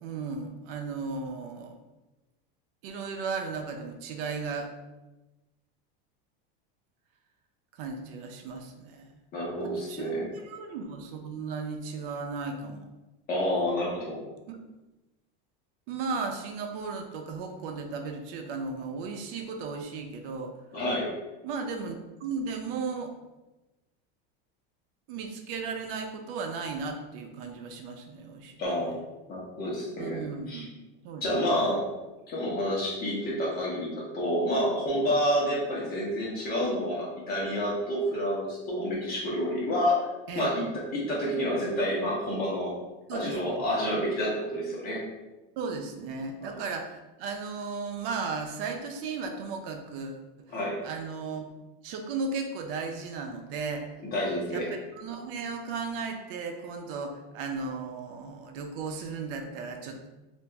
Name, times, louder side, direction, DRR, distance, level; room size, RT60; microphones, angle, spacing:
voice 1, 0.0-1.8 2.8-4.7 7.7-9.2 9.6-12.9 14.5-14.6 15.9-20.5 21.4-23.1 25.1-29.0 30.0-30.7 31.0-31.8 40.3-40.5 43.1-43.6 45.6-50.5 50.8-51.5 51.8-53.9 54.5-54.6 54.9-60.1, right 4 dB, 70° right, 4 dB, 0.6 m, -35 dB
voice 2, 9.3-10.3 13.3-14.2 20.7-21.1 28.6-29.0 29.3-30.2 30.5-30.6 31.2-31.9 32.3-40.1 40.3-40.6 40.9-42.7 43.1-45.0 46.4-46.5 50.5-50.8 54.1-54.7, equal, 30° left, -4 dB, 1.0 m, -29 dB
2.9 x 2.6 x 3.3 m, 1.1 s
supercardioid pair, 145°, 29 cm